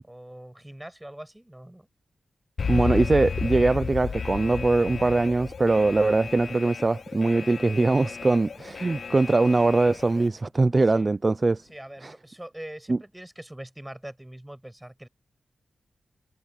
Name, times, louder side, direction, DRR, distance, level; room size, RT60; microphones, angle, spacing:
voice 1, 0.1-1.9 10.9-11.1 11.7-15.1, right 1 dB, 10° right, 7.4 m, -43 dB
Alarm, 2.6-10.3, left 5 dB, 60° left, 0.4 m, -33 dB
voice 2, 2.7-11.6 12.0-12.1 12.9-13.0, right 3 dB, 30° right, 0.5 m, -22 dB
sound 1, 4.8-6.7 9.6-12.0, left 7 dB, 85° left, 8.0 m, -51 dB
wide cardioid pair, 95°, 0 cm